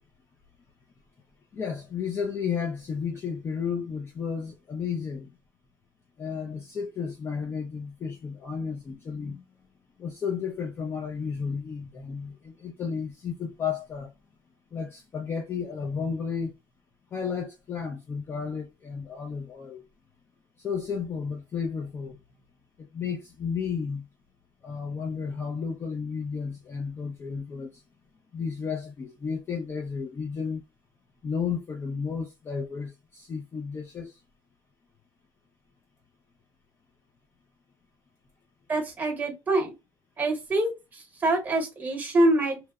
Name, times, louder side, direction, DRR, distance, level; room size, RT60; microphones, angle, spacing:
voice 1, 1.5-5.3 6.2-9.4 10.0-14.1 14.7-16.5 17.1-19.8 20.6-22.2 22.8-24.1 24.6-27.8 28.3-30.6 31.2-34.2, left 6 dB, 25° left, 0.3 m, -33 dB
voice 2, 38.7-39.7 40.2-42.6, right 1 dB, 15° right, 0.9 m, -25 dB
2.7 x 2.0 x 2.2 m
cardioid pair, 155°, 10 cm